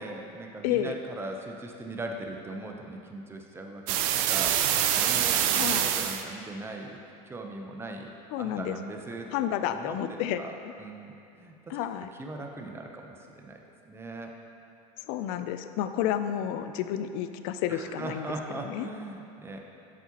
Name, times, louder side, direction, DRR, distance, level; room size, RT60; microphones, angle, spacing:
voice 1, 0.0-7.0 7.3-8.1 8.4-9.4 9.6-11.8 12.2-14.3 17.7-19.6, right 2 dB, 15° right, 2 dB, 0.7 m, -40 dB
voice 2, 0.6-0.9 5.5-5.9 8.3-8.8 9.3-10.4 11.7-12.1 15.1-18.3 18.6-18.9, left 10 dB, 65° left, 10 dB, 0.4 m, -30 dB
sound 1, 3.9-6.2, right 10 dB, 75° right, 0.5 m, -25 dB
7.5 x 7.4 x 2.9 m, 2.7 s
supercardioid pair, 120°, 18 cm